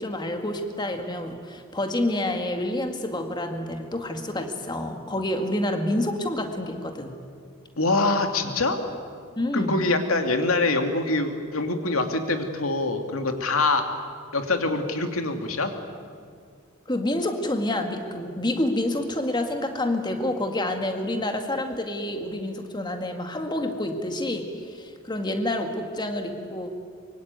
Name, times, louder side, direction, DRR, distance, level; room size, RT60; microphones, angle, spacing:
voice 1, 0.0-7.1 9.4-9.8 16.9-26.7, left 1 dB, 20° left, 5 dB, 2.0 m, -28 dB
voice 2, 7.8-8.8 9.5-13.9 14.3-15.7, left 2 dB, 90° left, 6 dB, 2.5 m, -24 dB
24.5 x 24.0 x 9.5 m, 2.1 s
head